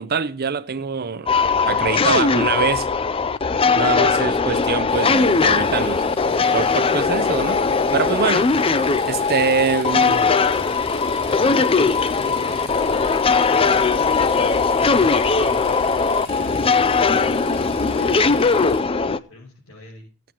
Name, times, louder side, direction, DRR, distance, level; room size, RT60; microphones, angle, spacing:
voice 1, 0.0-1.3 1.7-2.9 3.8-6.0 6.5-7.6 7.9-8.5 9.1-10.3, right 5 dB, 45° right, 0.6 m, -24 dB
sound 1, 1.3-19.2, left 4 dB, 25° left, 0.4 m, -19 dB
sound 2, 4.9-18.8, left 3 dB, 50° left, 4.6 m, -40 dB
voice 2, 11.8-13.4 19.0-20.1, left 2 dB, 75° left, 5.8 m, -47 dB
16.5 x 9.2 x 3.0 m
head